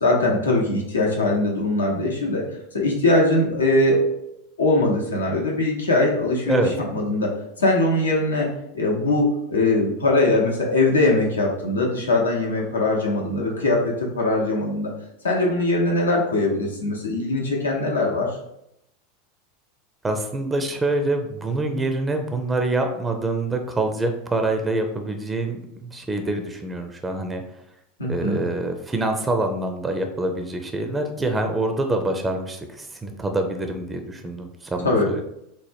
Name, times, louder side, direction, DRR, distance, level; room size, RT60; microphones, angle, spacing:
voice 1, 0.0-2.4 2.7-4.2 4.6-7.3 7.6-8.5 8.7-14.9 15.2-18.3 28.0-28.4 34.8-35.1, left 2 dB, 75° left, -1 dB, 0.7 m, -21 dB
voice 2, 20.0-27.4 28.1-35.2, right 2 dB, 15° right, 5 dB, 0.4 m, -25 dB
4.1 x 2.1 x 3.3 m, 0.78 s
figure-of-eight pair, 85°, 0 cm